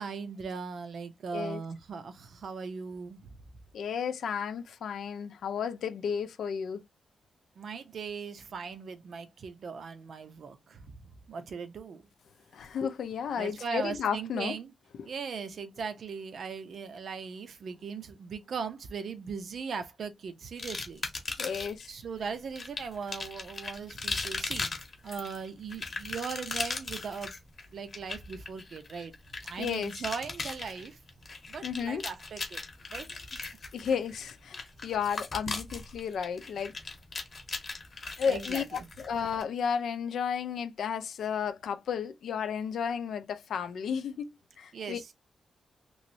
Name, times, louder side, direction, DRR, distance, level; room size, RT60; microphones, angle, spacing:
voice 1, 0.0-3.4 7.6-11.0 11.3-12.1 13.4-14.7 15.0-21.1 21.6-24.7 25.0-27.3 27.7-29.1 29.4-31.0 31.5-32.6 32.9-33.2 33.8-33.9 38.2-38.9 44.7-45.1, right 5 dB, 55° right, 0.6 m, -39 dB
voice 2, 3.7-6.8 12.5-14.6 15.0-15.1 21.4-21.9 29.6-30.0 31.6-32.0 33.7-36.7 38.2-38.6 39.0-44.3 44.6-45.1, left 7 dB, 80° left, 0.5 m, -33 dB
sound 1, 20.6-21.9 22.6-39.4, left 3 dB, 35° left, 0.9 m, -38 dB
3.1 x 3.1 x 2.6 m
wide cardioid pair, 175°, 0 cm